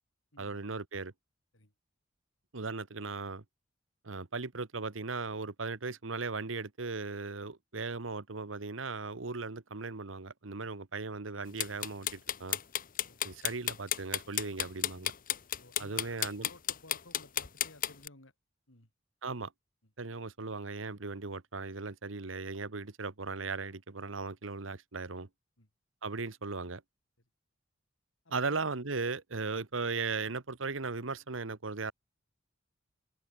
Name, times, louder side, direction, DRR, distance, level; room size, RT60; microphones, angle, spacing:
voice 1, 0.4-1.1 2.5-3.4 4.0-12.6 13.2-15.1 15.8-16.5 19.2-19.5 20.0-25.3 26.0-26.8 28.3-31.9, right 4 dB, 90° right, 1.3 m, -37 dB
sound 1, 11.6-18.1, left 11 dB, 45° left, 1.1 m, -32 dB
voice 2, 15.6-16.2 16.5-18.3 18.7-18.9 25.6-25.7 28.2-28.6, left 2 dB, 85° left, 5.7 m, -56 dB
open air
head